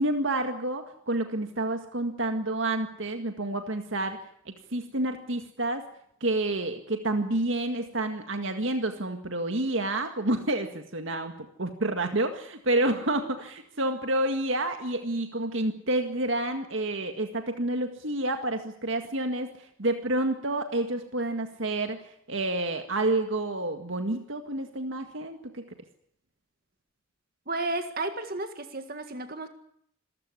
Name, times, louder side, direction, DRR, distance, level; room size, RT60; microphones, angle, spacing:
voice 1, 0.0-4.2 4.5-5.8 6.2-11.3 11.6-22.0 22.3-25.6, right 2 dB, 65° right, 6 dB, 1.9 m, -29 dB
voice 2, 27.5-29.5, right 2 dB, 45° right, 7 dB, 1.9 m, -32 dB
27.5 x 15.0 x 9.8 m, 0.70 s
head